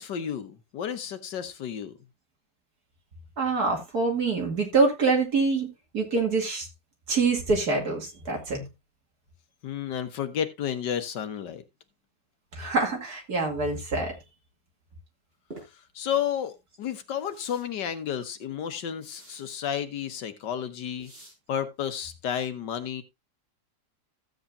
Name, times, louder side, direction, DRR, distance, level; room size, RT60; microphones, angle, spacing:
voice 1, 0.0-2.0 9.6-11.6 15.7-21.1 21.5-23.0, left 9 dB, 70° left, 1.6 m, -32 dB
voice 2, 3.4-5.7 5.9-6.7 7.1-8.6 12.6-14.1, right 3 dB, 55° right, 2.9 m, -25 dB
sound 1, 15.5-15.7 17.3-17.6 19.0-19.4 21.0-21.3, right 2 dB, 30° right, 5.2 m, -47 dB
15.0 x 7.9 x 2.6 m
omnidirectional pair, 1.9 m